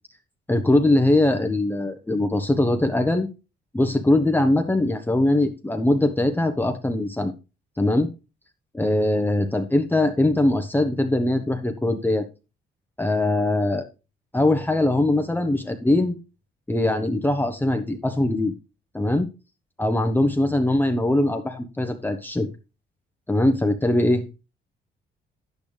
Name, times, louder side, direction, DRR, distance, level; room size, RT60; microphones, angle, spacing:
voice 1, 0.5-3.3 3.7-7.3 7.8-8.1 8.7-12.3 13.0-13.9 14.3-16.2 16.7-18.5 18.9-19.3 19.8-22.5 23.3-24.4, left 1 dB, 10° left, 6 dB, 1.0 m, -21 dB
10.5 x 8.7 x 3.3 m, 0.29 s
cardioid pair, 90°, 20 cm